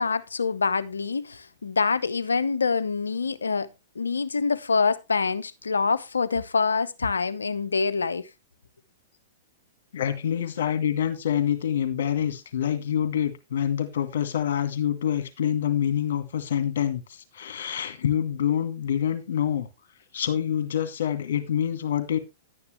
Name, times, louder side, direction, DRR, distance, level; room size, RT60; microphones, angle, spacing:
voice 1, 0.0-3.7 4.0-8.3, left 4 dB, 75° left, 0.8 m, -25 dB
voice 2, 9.9-19.7 20.1-22.2, left 9 dB, 60° left, 2.2 m, -26 dB
11.0 x 9.7 x 3.2 m
figure-of-eight pair, 105°, 0 cm